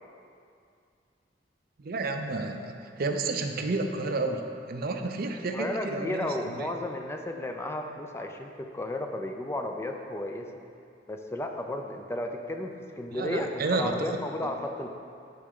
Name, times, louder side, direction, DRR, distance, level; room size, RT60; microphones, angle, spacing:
voice 1, 1.8-6.7 13.1-13.9, right 3 dB, 55° right, 5 dB, 0.6 m, -31 dB
voice 2, 5.5-10.5 11.1-12.7 13.0-14.9, left 1 dB, 15° left, 4 dB, 0.4 m, -33 dB
13.5 x 4.5 x 3.7 m, 2.4 s
head